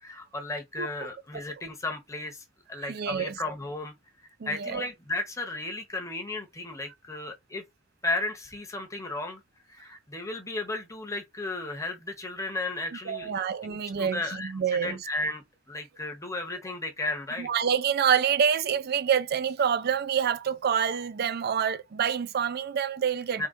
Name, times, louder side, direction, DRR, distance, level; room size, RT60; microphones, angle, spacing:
voice 1, 0.0-2.4 2.7-3.9 4.4-7.6 8.0-9.4 9.7-14.5 14.8-17.5 23.4-23.5, left 2 dB, 15° left, 0.8 m, -34 dB
voice 2, 0.8-1.1 2.9-3.4 4.4-4.8 13.1-15.0 17.4-23.5, right 7 dB, 50° right, 0.4 m, -27 dB
3.7 x 2.4 x 3.6 m
head